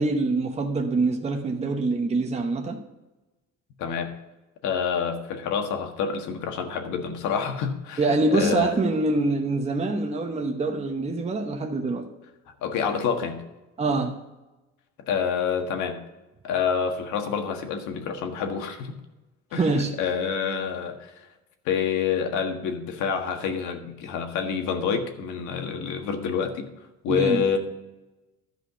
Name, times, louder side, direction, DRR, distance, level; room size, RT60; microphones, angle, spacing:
voice 1, 0.0-2.8 8.0-12.1 13.8-14.2 19.6-20.0 27.1-27.5, right 3 dB, 20° right, 0.9 m, -25 dB
voice 2, 3.8-4.1 4.6-8.8 12.6-13.4 15.1-16.0 16.4-18.9 19.5-21.3 21.6-26.7 27.0-27.6, left 6 dB, 75° left, 1.6 m, -27 dB
12.0 x 5.1 x 6.7 m
cardioid pair, 125°, 30 cm